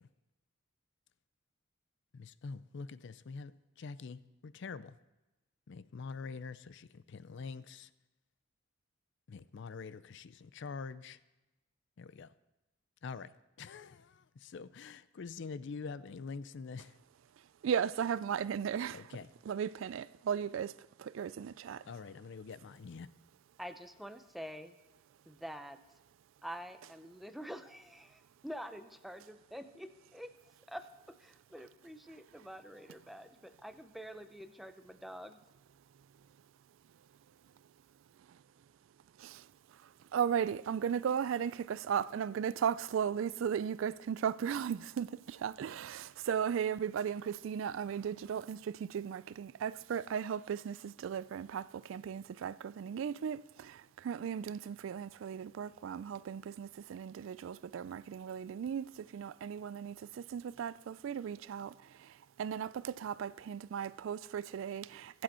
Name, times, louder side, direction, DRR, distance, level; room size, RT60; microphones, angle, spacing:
voice 1, 2.2-3.5 3.8-4.9 5.7-7.9 9.3-11.2 12.0-12.3 13.0-13.3 13.6-14.0 14.4-16.9 18.9-19.3 21.9-23.1, left 4 dB, 60° left, 0.4 m, -45 dB
voice 2, 17.6-19.0 19.5-20.7 21.0-21.8 39.2-39.4 40.1-53.8 54.0-61.7 62.4-65.2, right 8 dB, 65° right, 0.3 m, -36 dB
voice 3, 23.6-24.8 25.3-25.8 26.4-30.3 30.7-35.4, equal, ahead, 0.6 m, -47 dB
22.5 x 7.6 x 4.3 m
head